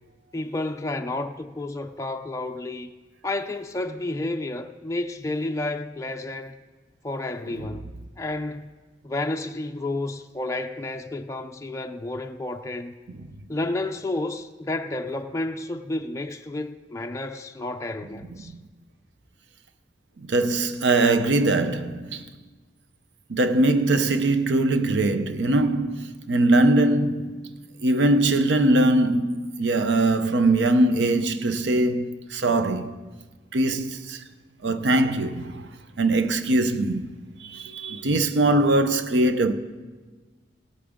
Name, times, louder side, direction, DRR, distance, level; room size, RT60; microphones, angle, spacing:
voice 1, 0.3-2.9 3.2-6.6 7.0-7.9 8.2-8.8 9.0-12.9 13.5-18.5, left 2 dB, 15° left, 0.4 m, -31 dB
voice 2, 20.2-22.3 23.3-27.5 27.8-32.9 33.5-34.2 34.6-35.7 36.0-37.1 37.4-39.5, right 2 dB, 85° right, 0.6 m, -21 dB
17.5 x 8.7 x 3.6 m
head